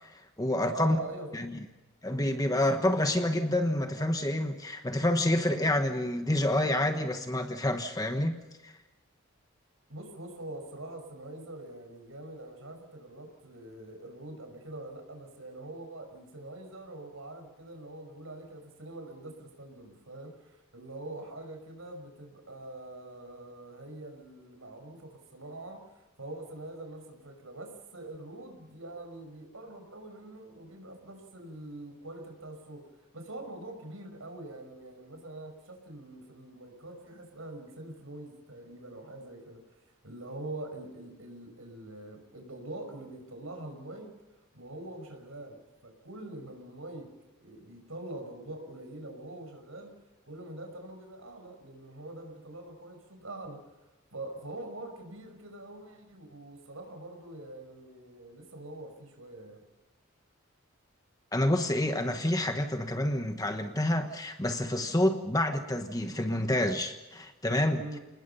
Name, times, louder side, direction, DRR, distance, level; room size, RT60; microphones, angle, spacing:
voice 1, 0.0-1.0 1.3-1.6 2.0-8.3 8.6-8.7 61.3-68.0, left 1 dB, 15° left, 6 dB, 1.2 m, -28 dB
voice 2, 0.6-1.3 9.9-39.6 40.0-44.1 44.5-45.6 45.8-47.1 47.4-49.9 50.2-53.6 54.1-59.6 67.7-68.0, right 2 dB, 75° right, 5 dB, 5.5 m, -44 dB
28.0 x 20.0 x 5.6 m, 1.1 s
head